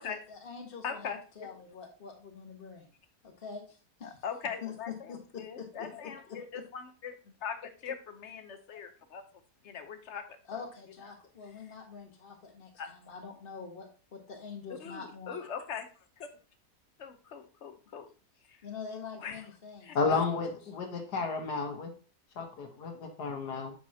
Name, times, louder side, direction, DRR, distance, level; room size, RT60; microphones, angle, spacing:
voice 1, 0.0-2.9 3.2-4.2 4.6-6.6 10.5-15.4 18.6-20.6, left 6 dB, 35° left, 1 dB, 1.5 m, -45 dB
voice 2, 0.8-1.5 4.0-9.2 9.6-10.2 10.5-10.6 12.8-12.9 14.8-16.3 17.0-18.1 18.5-18.6 19.1-19.5 19.8-20.2, left 7 dB, 50° left, 9 dB, 1.0 m, -41 dB
voice 3, 19.9-21.9 22.4-23.7, left 4 dB, 80° left, 4 dB, 1.8 m, -32 dB
7.4 x 5.9 x 2.8 m, 0.36 s
omnidirectional pair, 1.7 m